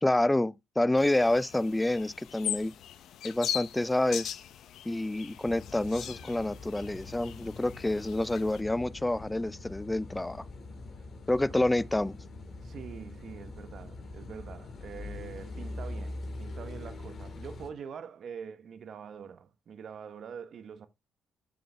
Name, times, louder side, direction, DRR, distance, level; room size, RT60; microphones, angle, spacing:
voice 1, 0.0-2.7 3.2-4.3 4.9-10.4 11.3-12.2, left 1 dB, 10° left, 0.4 m, -28 dB
sound 1, 1.0-8.6, left 10 dB, 75° left, 0.8 m, -40 dB
Car passing by / Idling / Accelerating revving vroom, 5.4-17.7, left 2 dB, 50° left, 2.2 m, -43 dB
voice 2, 12.6-20.9, right 7 dB, 60° right, 1.0 m, -44 dB
7.0 x 6.5 x 3.4 m
cardioid pair, 90°, 0 cm